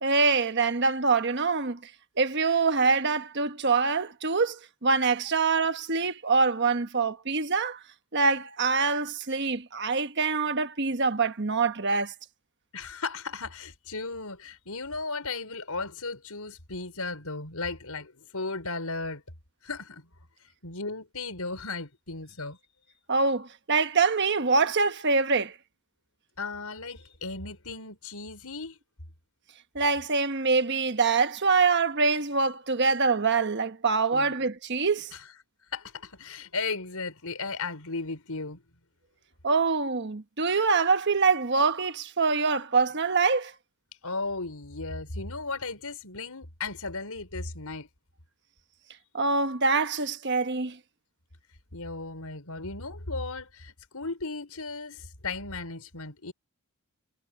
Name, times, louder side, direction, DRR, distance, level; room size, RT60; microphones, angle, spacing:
voice 1, 0.0-1.8 2.2-7.8 8.1-12.1 23.1-25.5 29.7-35.1 39.4-43.5 49.1-50.8, right 4 dB, 50° right, 1.3 m, -25 dB
voice 2, 12.7-19.2 19.6-20.1 20.4-22.6 26.4-28.8 34.1-34.4 35.1-35.2 35.7-38.6 44.0-47.9 51.7-56.3, left 3 dB, 90° left, 5.4 m, -36 dB
head